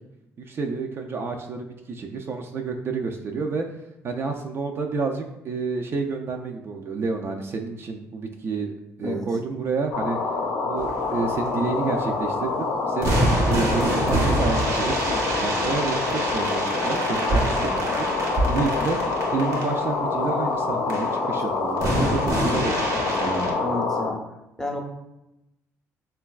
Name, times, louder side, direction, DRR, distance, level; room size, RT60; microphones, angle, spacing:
voice 1, 0.5-3.6 4.0-8.7 9.0-10.2 10.6-18.1 18.5-19.0 19.3-23.6, right 4 dB, 45° right, 3 dB, 0.3 m, -29 dB
sound 1, 9.9-24.1, left 3 dB, 85° left, 0.5 m, -26 dB
sound 2, 10.8-11.8 12.1-12.2 13.0-19.8 20.9-21.1 21.8-23.5, right 1 dB, 65° right, 0.8 m, -26 dB
voice 2, 18.4-18.9 23.6-24.2 24.6-24.8, left 1 dB, 10° left, 1 dB, 0.6 m, -31 dB
3.8 x 2.2 x 2.3 m, 0.90 s
cardioid pair, 90°, 6 cm